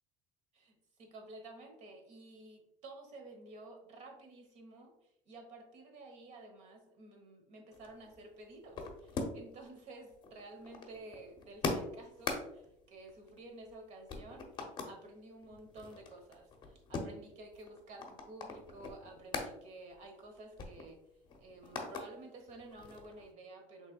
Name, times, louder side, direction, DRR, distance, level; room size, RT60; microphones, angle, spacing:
voice 1, 0.5-14.4 14.8-21.0 21.4-23.9, right 2 dB, 55° right, 3 dB, 1.2 m, -52 dB
Plastic pencil case open and closing, 7.7-9.6 9.9-13.8 14.1-15.0 15.4-19.5 19.9-20.0 20.3-22.1 22.5-23.3, left 3 dB, 30° left, 0.7 m, -42 dB
5.3 x 3.3 x 2.3 m, 0.80 s
cardioid pair, 140°, 14 cm